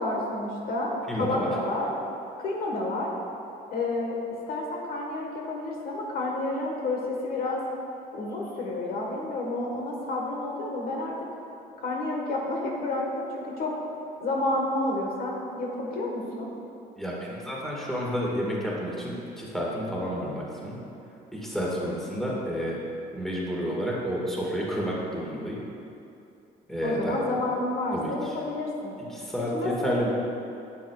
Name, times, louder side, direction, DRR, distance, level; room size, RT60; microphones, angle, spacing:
voice 1, 0.0-1.9 2.4-3.1 3.7-4.2 4.5-7.6 8.1-11.1 11.8-13.7 14.2-16.5 26.8-29.0 29.5-30.1, left 2 dB, 65° left, -1 dB, 1.3 m, -30 dB
voice 2, 1.1-1.5 17.0-20.8 21.3-22.8 23.1-25.6 26.7-27.2 27.9-28.3 29.1-30.1, equal, ahead, -5 dB, 1.7 m, -30 dB
10.0 x 8.1 x 2.3 m, 2.7 s
cardioid pair, 110°, 17 cm